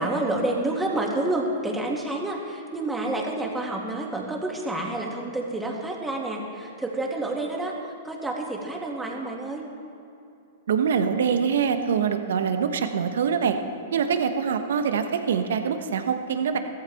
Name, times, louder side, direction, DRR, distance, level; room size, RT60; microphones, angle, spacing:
voice 1, 0.0-7.7 8.0-9.7, right 2 dB, 10° right, -1 dB, 2.3 m, -29 dB
voice 2, 10.7-13.6 13.9-16.6, right 7 dB, 75° right, 7 dB, 1.1 m, -24 dB
16.0 x 14.0 x 3.6 m, 2.6 s
hypercardioid pair, 115°, 0 cm